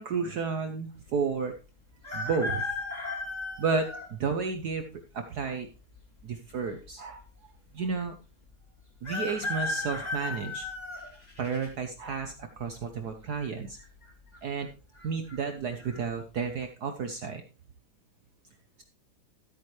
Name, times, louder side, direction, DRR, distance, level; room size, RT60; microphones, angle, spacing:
voice 1, 0.0-1.5 2.1-3.1 3.6-4.8 5.1-5.7 6.2-7.2 7.7-8.1 9.0-10.7 11.4-13.8 14.4-14.7 15.0-17.4, right 5 dB, 60° right, 7 dB, 1.2 m, -32 dB
sound 1, 2.0-4.1 4.7-4.8 5.9-6.6 6.9-7.0 7.1-7.2 9.0-11.7 12.2-12.6 13.7-14.1 14.3-14.4 15.0-15.3 15.8-16.0, left 3 dB, 20° left, 2.2 m, -35 dB
13.5 x 8.7 x 3.2 m, 0.32 s
omnidirectional pair, 2.3 m